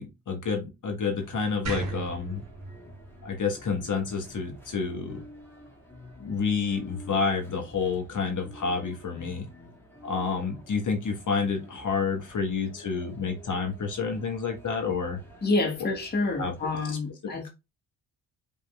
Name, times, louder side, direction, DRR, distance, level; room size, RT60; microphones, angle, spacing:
voice 1, 0.0-2.4 3.2-5.2 6.2-9.5 10.0-15.2 16.4-16.5, left 5 dB, 40° left, 1.4 m, -29 dB
sound 1, 1.2-16.9, equal, 5° left, 2.0 m, -50 dB
sound 2, 1.6-4.8, right 2 dB, 35° right, 2.0 m, -36 dB
voice 2, 15.4-17.5, left 2 dB, 20° left, 1.3 m, -28 dB
5.2 x 3.6 x 2.3 m
hypercardioid pair, 45°, 47 cm